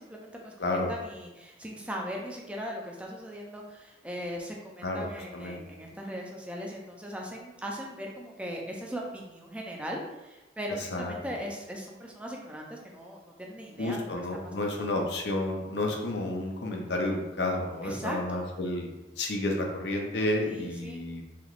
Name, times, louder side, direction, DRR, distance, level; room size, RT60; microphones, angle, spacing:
voice 1, 0.0-0.5 0.9-15.0 17.8-18.4 20.5-21.0, equal, 5° right, -1 dB, 0.4 m, -39 dB
voice 2, 13.8-18.9 19.2-21.2, left 1 dB, 65° left, 1 dB, 0.5 m, -31 dB
3.3 x 2.9 x 2.4 m, 1.1 s
head